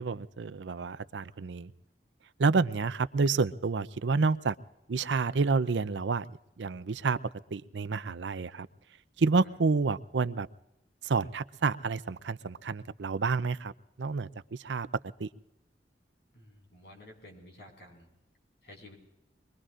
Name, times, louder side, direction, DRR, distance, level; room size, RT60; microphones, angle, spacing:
voice 1, 0.0-1.7 2.4-4.5 4.9-6.3 6.6-7.2 7.5-8.7 9.2-10.5 11.0-13.7 14.0-14.9 15.2-15.3, right 4 dB, 85° right, 15 dB, 0.6 m, -29 dB
voice 2, 16.3-18.1 18.6-18.9, left 1 dB, 75° left, 2 dB, 5.1 m, -52 dB
25.0 x 22.5 x 2.5 m, 0.91 s
head